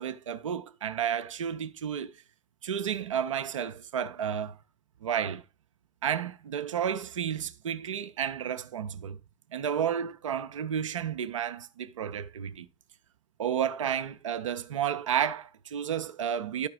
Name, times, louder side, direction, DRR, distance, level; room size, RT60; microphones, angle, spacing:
voice 1, 0.0-2.1 2.6-4.6 5.0-5.4 6.0-9.2 9.5-12.7 13.4-16.7, right 8 dB, 85° right, 0.5 m, -31 dB
12.0 x 4.7 x 3.6 m
figure-of-eight pair, 55°, 16 cm